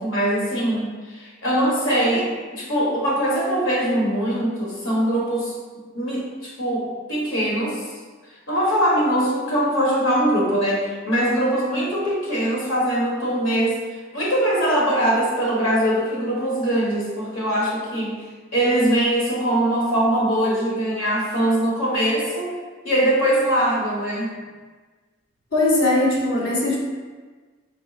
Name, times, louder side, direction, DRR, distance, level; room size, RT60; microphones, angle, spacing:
voice 1, 0.0-5.5 5.9-7.8 8.5-13.8 14.1-18.2 18.5-22.5 22.8-24.3, right 1 dB, 80° left, -5 dB, 1.4 m, -22 dB
voice 2, 25.5-26.8, left 2 dB, 60° left, -5 dB, 0.9 m, -20 dB
4.7 x 3.8 x 2.4 m, 1.4 s
head